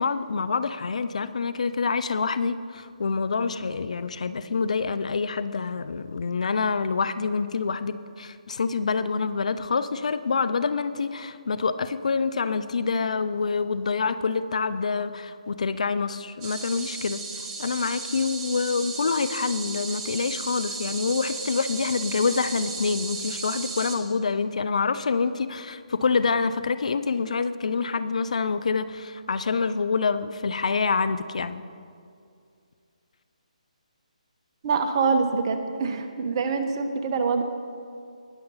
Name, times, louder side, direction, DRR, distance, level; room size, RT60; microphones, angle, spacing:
voice 1, 0.0-17.2 17.6-31.6, left 5 dB, 60° left, 13 dB, 0.5 m, -26 dB
sound 1, 16.4-24.0, right 4 dB, 15° right, 1.1 m, -35 dB
voice 2, 34.6-37.4, right 4 dB, 35° right, 7 dB, 1.0 m, -25 dB
20.0 x 6.8 x 4.0 m, 2.3 s
figure-of-eight pair, 145°, 4 cm